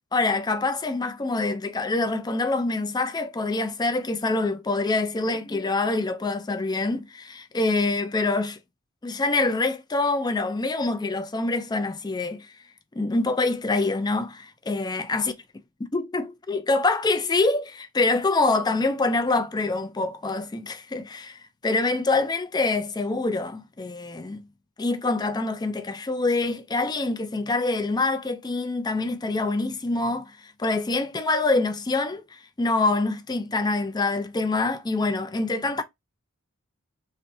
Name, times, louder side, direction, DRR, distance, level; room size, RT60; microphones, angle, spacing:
voice 1, 0.1-8.6 9.0-12.5 13.0-15.3 15.9-24.4 24.8-30.3 30.6-35.8, left 3 dB, 20° left, 0.4 m, -25 dB
3.3 x 2.6 x 2.6 m
head